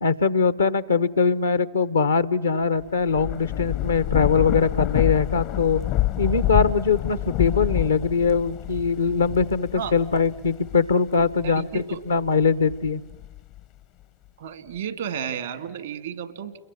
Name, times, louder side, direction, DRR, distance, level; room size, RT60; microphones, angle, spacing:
voice 1, 0.0-5.8 6.2-13.0, left 5 dB, 85° left, 15 dB, 0.9 m, -22 dB
Thunder / Rain, 2.8-11.7 12.3-13.6, left 15 dB, 55° left, 0.8 m, -28 dB
voice 2, 11.4-12.0 14.4-16.6, right 8 dB, 75° right, 13 dB, 2.1 m, -32 dB
29.5 x 22.0 x 8.5 m, 1.1 s
figure-of-eight pair, 80°, 0 cm